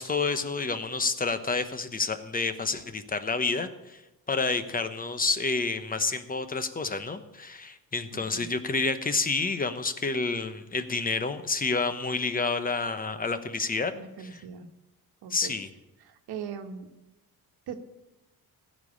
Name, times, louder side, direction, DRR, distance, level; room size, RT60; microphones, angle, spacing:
voice 1, 0.0-4.0 4.3-13.9 14.2-14.4 15.3-15.7, left 4 dB, 25° left, 10 dB, 1.0 m, -29 dB
voice 2, 8.1-8.5 13.9-14.7 15.2-15.5 16.0-16.9 17.7-17.8, right 7 dB, 90° right, 6 dB, 1.3 m, -40 dB
15.5 x 5.3 x 8.7 m, 1.0 s
cardioid pair, 115°, 37 cm